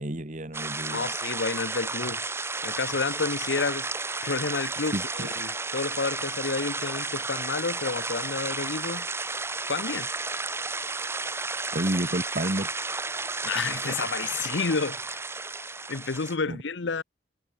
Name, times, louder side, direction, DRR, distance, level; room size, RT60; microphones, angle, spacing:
voice 1, 0.0-1.1 4.9-5.3 11.7-12.7 16.5-16.6, right 1 dB, 40° right, 2.1 m, -30 dB
sound 1, 0.5-16.4, right 3 dB, 15° right, 1.7 m, -32 dB
voice 2, 0.9-2.2 2.6-3.9 4.2-9.1 9.7-10.1 13.4-15.2 15.9-17.0, left 4 dB, 75° left, 0.8 m, -30 dB
head